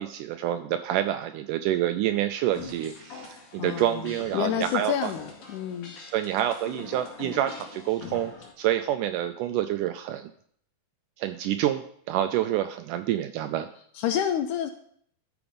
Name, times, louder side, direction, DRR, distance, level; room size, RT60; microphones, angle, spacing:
voice 1, 0.0-5.1 6.1-8.3 8.6-10.3 11.2-13.7, right 12 dB, 80° right, 9 dB, 1.9 m, -27 dB
sound 1, 2.5-8.5, left 5 dB, 65° left, 3.5 m, -42 dB
voice 2, 3.6-5.9 14.0-14.7, left 10 dB, 80° left, 7 dB, 1.9 m, -29 dB
13.0 x 5.0 x 5.2 m, 0.62 s
omnidirectional pair, 4.1 m